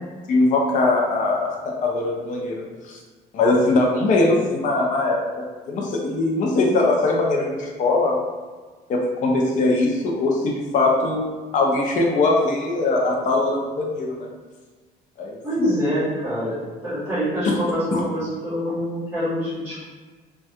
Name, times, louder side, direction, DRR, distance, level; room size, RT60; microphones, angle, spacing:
voice 1, 0.3-3.0 3.3-8.2 8.9-11.2 11.5-14.3 15.2-15.4 17.4-17.6 17.9-18.0, left 2 dB, 45° left, -1 dB, 0.6 m, -21 dB
voice 2, 15.4-19.8, equal, 10° right, -13 dB, 1.2 m, -25 dB
3.2 x 2.3 x 2.7 m, 1.4 s
cardioid pair, 130°, 17 cm